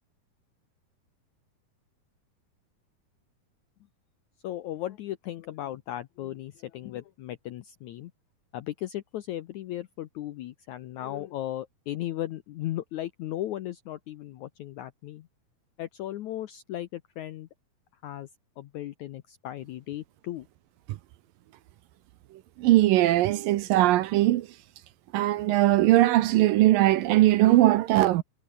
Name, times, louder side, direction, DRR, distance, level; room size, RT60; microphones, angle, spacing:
voice 1, 4.4-8.1 8.5-15.3 15.8-17.5 18.0-18.3 18.6-20.5, left 13 dB, 75° left, 1.7 m, -36 dB
voice 2, 22.6-24.5 25.1-28.2, right 15 dB, 75° right, 2.4 m, -20 dB
omnidirectional pair, 4.4 m